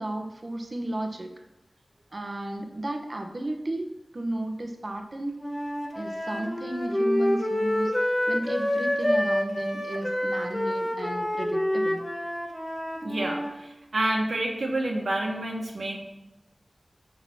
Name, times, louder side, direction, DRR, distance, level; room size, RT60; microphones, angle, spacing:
voice 1, 0.0-1.3 2.1-5.5 6.0-12.0, right 1 dB, 50° right, 4 dB, 1.1 m, -33 dB
Wind instrument woodwind instrument, 5.4-13.5, left 1 dB, 20° left, 1.5 m, -28 dB
voice 2, 13.0-16.0, right 1 dB, 65° right, 0 dB, 1.5 m, -28 dB
10.0 x 3.9 x 7.1 m, 0.95 s
wide cardioid pair, 85°, 0 cm